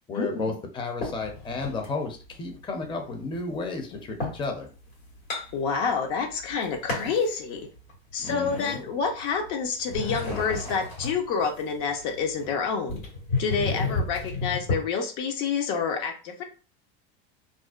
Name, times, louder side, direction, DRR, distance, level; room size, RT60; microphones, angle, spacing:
voice 1, 0.1-4.7 8.2-8.8, left 3 dB, 15° left, 3 dB, 0.5 m, -33 dB
sound 1, 1.0-1.9 2.4-4.5 4.9-6.1 6.4-7.3 7.8-9.5 9.8-14.8, left 3 dB, 85° left, 1.5 m, -32 dB
voice 2, 5.5-7.7 8.1-13.0 13.4-16.4, left 5 dB, 70° left, 3 dB, 0.8 m, -28 dB
2.5 x 2.1 x 2.4 m, 0.36 s
supercardioid pair, 105°, 30 cm